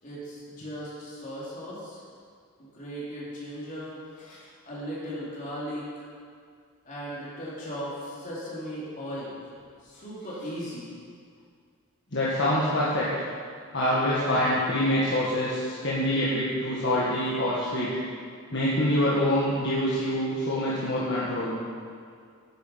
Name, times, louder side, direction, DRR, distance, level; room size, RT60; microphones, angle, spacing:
voice 1, 0.0-2.0 2.6-6.0 6.8-9.4 9.8-10.9, equal, 35° left, -7 dB, 3.5 m, -37 dB
voice 2, 12.1-13.1 13.7-17.9 18.5-21.6, left 1 dB, 55° left, -8 dB, 1.7 m, -25 dB
10.5 x 9.1 x 5.7 m, 2.2 s
head